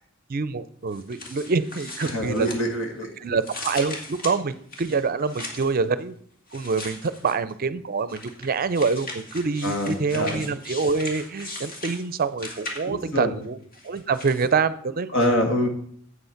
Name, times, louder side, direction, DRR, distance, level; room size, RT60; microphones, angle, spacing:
voice 1, 0.3-2.5 3.2-6.1 6.5-13.6 13.8-15.1, right 4 dB, 45° right, 15 dB, 0.5 m, -26 dB
sound 1, 0.9-3.0 3.4-5.8 6.5-7.5 8.1-13.1 13.7-14.5, left 2 dB, 45° left, 2.0 m, -38 dB
voice 2, 2.0-3.1 9.6-10.5 12.9-13.4 15.1-15.7, left 1 dB, 65° left, 4 dB, 2.0 m, -25 dB
8.2 x 8.0 x 5.8 m, 0.62 s
head